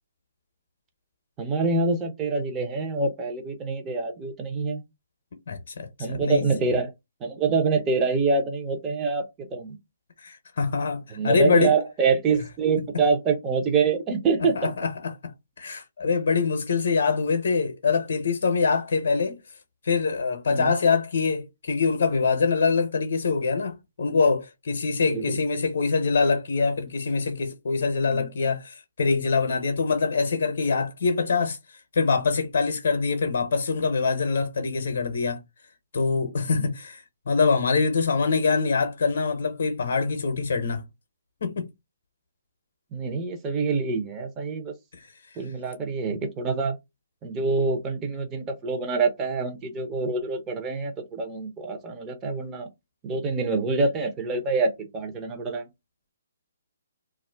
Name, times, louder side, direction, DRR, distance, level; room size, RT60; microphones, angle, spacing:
voice 1, 1.4-4.8 6.0-6.9 7.2-9.8 11.2-14.7 20.5-20.8 25.1-25.4 28.1-28.3 36.5-36.7 42.9-44.7 45.4-46.8 47.2-52.7 53.0-55.7, right 4 dB, 20° right, 0.6 m, -26 dB
voice 2, 5.5-6.5 10.2-11.7 14.6-19.4 19.8-31.6 31.9-35.4 35.9-40.9 41.4-41.7 44.9-45.1, left 4 dB, 60° left, 0.6 m, -24 dB
2.4 x 2.1 x 3.3 m
figure-of-eight pair, 140°, 0 cm